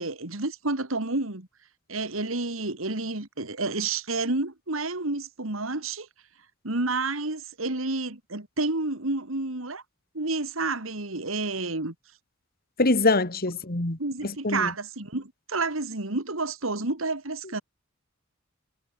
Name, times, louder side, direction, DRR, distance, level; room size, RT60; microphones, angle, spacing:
voice 1, 0.0-1.5 1.9-6.1 6.6-9.8 10.1-11.9 14.0-17.6, right 3 dB, 85° right, 2.8 m, -30 dB
voice 2, 12.8-14.7, left 2 dB, 50° left, 2.7 m, -24 dB
head